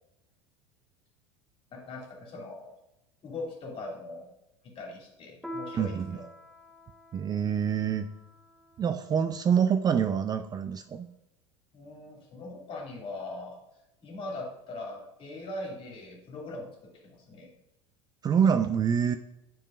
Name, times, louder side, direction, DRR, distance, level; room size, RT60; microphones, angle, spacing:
voice 1, 1.7-2.8 3.2-4.3 4.6-6.3 11.7-13.6 14.0-17.5, left 2 dB, 40° left, 0 dB, 2.5 m, -41 dB
Piano, 5.4-10.4, equal, ahead, 0.9 m, -47 dB
voice 2, 5.7-6.2 7.1-8.1 8.8-11.1 18.2-19.2, right 7 dB, 25° right, 9 dB, 0.4 m, -26 dB
9.7 x 4.7 x 2.5 m, 0.92 s
hypercardioid pair, 80°, 15 cm